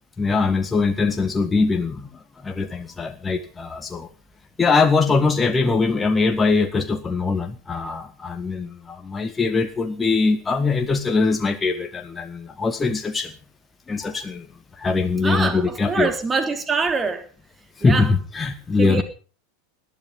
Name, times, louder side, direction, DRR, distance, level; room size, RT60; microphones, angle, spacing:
voice 1, 0.2-2.0 2.4-4.1 4.6-13.3 13.9-14.4 14.8-16.1 17.8-19.0, left 4 dB, 15° left, 1.8 m, -22 dB
voice 2, 15.2-17.3 17.8-18.1 18.8-19.0, right 4 dB, 20° right, 3.2 m, -24 dB
20.0 x 12.5 x 5.6 m
figure-of-eight pair, 85°, 0 cm